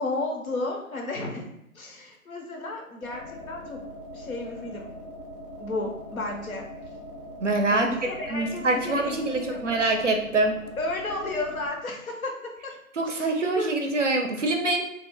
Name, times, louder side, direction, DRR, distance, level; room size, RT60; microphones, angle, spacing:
voice 1, 0.0-3.8 4.1-4.9 5.6-6.7 7.7-9.7 10.8-12.7 13.0-13.7, left 2 dB, 70° left, 1 dB, 0.8 m, -33 dB
sound 1, 3.0-11.7, left 1 dB, 40° left, 0.6 m, -42 dB
voice 2, 7.4-7.9 8.3-10.6 13.0-14.9, right 2 dB, 55° right, 3 dB, 0.5 m, -25 dB
2.1 x 2.1 x 3.5 m, 0.79 s
figure-of-eight pair, 155°, 43 cm